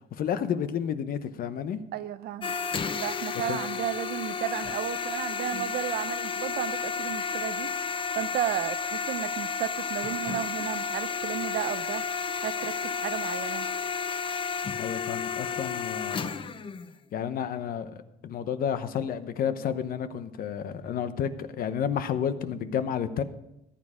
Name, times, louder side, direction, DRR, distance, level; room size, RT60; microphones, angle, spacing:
voice 1, 0.2-1.8 3.5-3.6 14.8-16.4 17.1-23.2, left 8 dB, 60° left, 1.0 m, -31 dB
voice 2, 1.9-2.6 2.9-7.7 8.1-12.0 12.4-13.7, right 12 dB, 70° right, 0.6 m, -33 dB
sound 1, 2.4-16.9, left 5 dB, 30° left, 0.7 m, -32 dB
14.5 x 10.0 x 5.0 m
cardioid pair, 110°, 17 cm